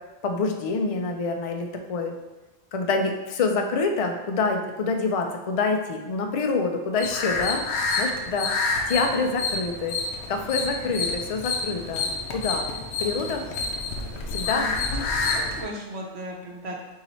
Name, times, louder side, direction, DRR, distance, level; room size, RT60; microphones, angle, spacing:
voice 1, 0.2-2.2 2.7-7.6 8.0-8.5 8.9-10.0 10.3-12.1 12.3-12.7 13.0-13.4 14.3-15.1, left 4 dB, 55° left, 4 dB, 0.3 m, -26 dB
sound 1, 7.0-15.6, left 3 dB, 75° left, 0.9 m, -28 dB
voice 2, 15.1-16.8, right 1 dB, 70° right, 0 dB, 1.1 m, -36 dB
4.1 x 2.9 x 4.1 m, 1.1 s
omnidirectional pair, 1.2 m